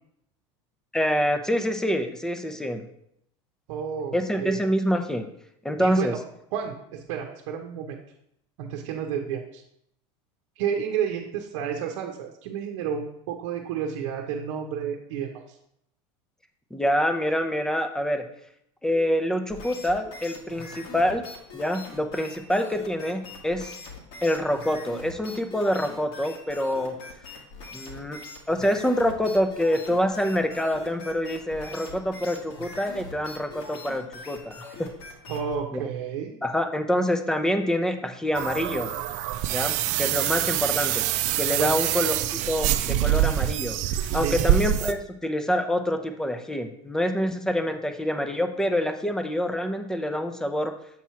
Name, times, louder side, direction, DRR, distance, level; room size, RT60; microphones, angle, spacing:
voice 1, 0.9-2.8 4.1-5.3 5.6-6.1 16.7-18.2 18.8-21.2 21.5-23.8 24.2-26.9 27.7-28.2 28.5-34.9 35.7-35.8 36.4-38.9 39.5-41.0 41.4-42.1 42.5-50.7, equal, 5° left, 7 dB, 0.6 m, -26 dB
voice 2, 3.7-4.6 5.8-6.2 6.5-8.0 8.6-9.6 10.6-15.4 35.3-36.3 41.5-41.7 44.1-44.4, right 8 dB, 75° right, 2 dB, 0.8 m, -31 dB
sound 1, 19.5-35.6, left 3 dB, 70° left, 1.6 m, -42 dB
sound 2, 38.3-44.9, right 12 dB, 50° right, 0.5 m, -25 dB
7.4 x 3.0 x 5.7 m, 0.74 s
supercardioid pair, 125°, 15 cm